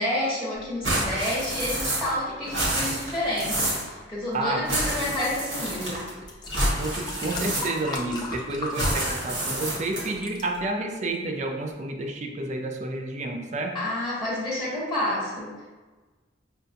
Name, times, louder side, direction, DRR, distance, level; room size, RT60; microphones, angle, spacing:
voice 1, 0.0-6.1 13.7-15.5, left 1 dB, 5° left, -9 dB, 0.9 m, -29 dB
sound 1, 0.8-2.2 2.4-3.9 4.6-6.1 6.5-8.0 8.7-10.2, right 1 dB, 75° right, 1.3 m, -28 dB
sound 2, 6.2-9.7 10.0-10.4 11.1-11.2, left 2 dB, 20° left, 0.4 m, -36 dB
voice 2, 6.8-13.8, right 2 dB, 40° right, 4 dB, 0.4 m, -30 dB
5.5 x 2.2 x 2.6 m, 1.3 s
head